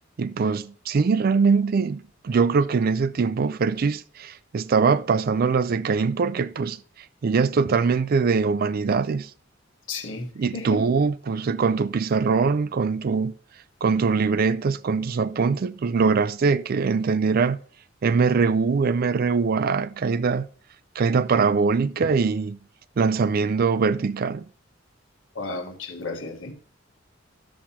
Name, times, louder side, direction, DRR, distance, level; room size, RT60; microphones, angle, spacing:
voice 1, 0.2-6.8 7.2-9.3 10.4-13.3 13.8-17.6 18.0-20.5 21.0-22.6 23.0-24.5, right 5 dB, 50° right, 0.4 m, -22 dB
voice 2, 9.9-10.8 25.3-26.5, left 3 dB, 75° left, 1.4 m, -33 dB
11.0 x 7.4 x 2.8 m
head